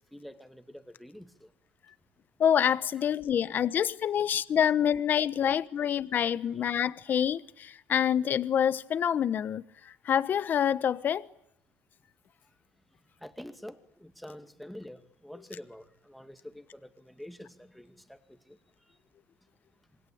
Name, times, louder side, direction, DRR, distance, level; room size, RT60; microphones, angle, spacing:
voice 1, 0.1-1.5 13.2-13.8 14.0-18.2 18.5-18.6, equal, ahead, 2.3 m, -46 dB
voice 2, 2.4-9.6 10.1-11.2, left 9 dB, 40° left, 1.2 m, -26 dB
27.5 x 24.5 x 8.8 m
cardioid pair, 155°, 5 cm